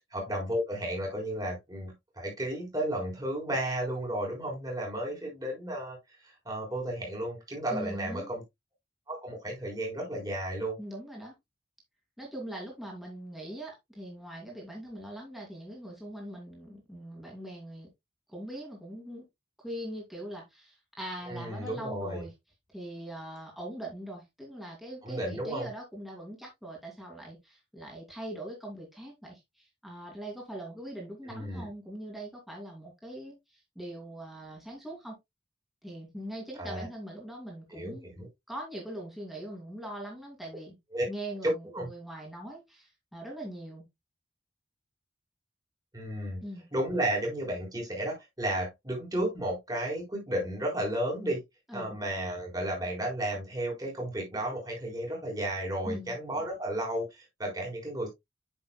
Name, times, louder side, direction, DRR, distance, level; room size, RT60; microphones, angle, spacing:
voice 1, 0.1-6.0 6.2-8.4 9.1-10.8 21.3-22.2 25.0-25.7 31.3-31.7 36.6-36.9 37.7-38.3 40.9-41.1 41.7-41.9 45.9-46.4 46.7-51.4 51.7-58.1, right 1 dB, 20° right, 4.2 m, -33 dB
voice 2, 7.7-8.3 10.8-11.3 12.2-17.9 18.3-19.3 19.6-22.3 22.7-35.2 35.8-38.1 38.5-40.8 41.1-43.8 46.4-46.7 51.7-52.0 55.8-56.2, right 1 dB, ahead, 2.7 m, -41 dB
9.1 x 6.8 x 2.3 m
head